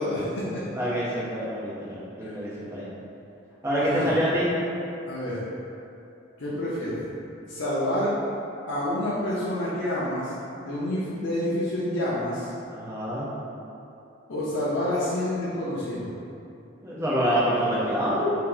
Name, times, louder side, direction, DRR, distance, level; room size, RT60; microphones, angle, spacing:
voice 1, 0.0-0.6 2.2-2.4 3.8-4.1 5.1-5.4 6.4-7.1 7.5-8.1 8.7-10.3 10.6-12.5 14.3-16.1, left 1 dB, 80° left, -8 dB, 0.6 m, -28 dB
voice 2, 0.7-2.9 3.6-4.5 12.7-13.3 16.8-18.3, equal, 15° right, -8 dB, 0.6 m, -26 dB
2.8 x 2.8 x 3.8 m, 2.8 s
head